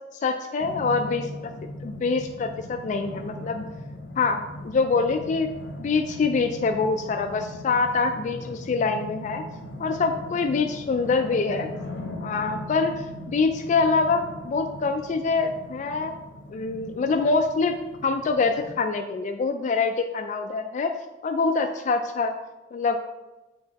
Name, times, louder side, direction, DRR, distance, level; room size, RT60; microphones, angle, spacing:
voice 1, 0.2-1.5 1.8-3.6 4.2-5.5 5.8-9.4 9.8-11.7 12.2-16.1 16.5-17.7 18.0-20.9 21.2-22.3 22.7-23.0, left 4 dB, 40° left, 6 dB, 0.3 m, -25 dB
sound 1, 0.6-18.7, left 1 dB, 75° left, 0.8 m, -39 dB
7.7 x 3.4 x 4.0 m, 1.1 s
head